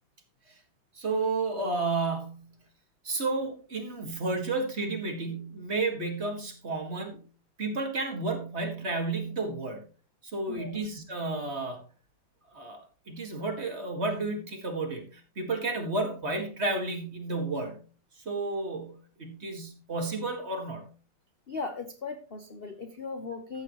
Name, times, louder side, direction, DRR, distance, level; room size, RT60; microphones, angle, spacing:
voice 1, 1.0-2.5 3.0-7.2 7.6-9.8 10.2-11.8 12.5-17.8 18.3-20.9, right 3 dB, 30° right, 3 dB, 2.0 m, -32 dB
voice 2, 10.5-10.8 21.5-23.6, left 4 dB, 65° left, 6 dB, 0.5 m, -38 dB
14.0 x 8.0 x 3.0 m, 0.35 s
omnidirectional pair, 2.3 m